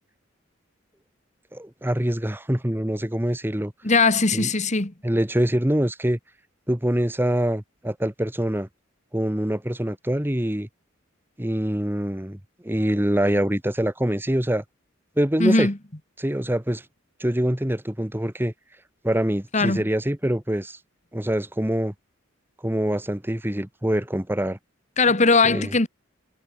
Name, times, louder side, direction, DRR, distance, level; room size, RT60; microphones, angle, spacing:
voice 1, 1.5-3.7 4.3-4.5 5.0-6.2 6.7-8.7 9.1-10.7 11.4-12.4 12.6-14.6 15.2-15.7 16.2-16.8 17.2-18.5 19.0-20.8 21.1-21.9 22.6-24.6 25.4-25.7, right 1 dB, 10° right, 1.2 m, -24 dB
voice 2, 3.8-4.9 15.4-15.8 19.5-19.8 25.0-25.9, left 3 dB, 35° left, 1.8 m, -19 dB
head